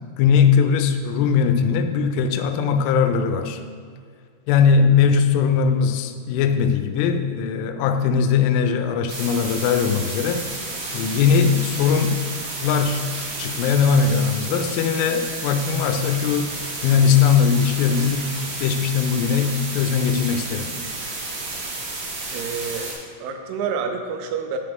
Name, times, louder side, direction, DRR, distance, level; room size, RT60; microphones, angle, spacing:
voice 1, 0.2-3.6 4.5-10.4 10.9-12.2 12.6-13.1 13.4-16.6 16.8-20.7, left 6 dB, 85° left, 8 dB, 3.1 m, -20 dB
sound 1, 9.1-22.9, right 3 dB, 65° right, 3.2 m, -31 dB
voice 2, 22.3-23.0 23.2-24.6, right 6 dB, 90° right, 6 dB, 3.2 m, -28 dB
8.6 x 5.9 x 3.5 m, 2.1 s
omnidirectional pair, 5.6 m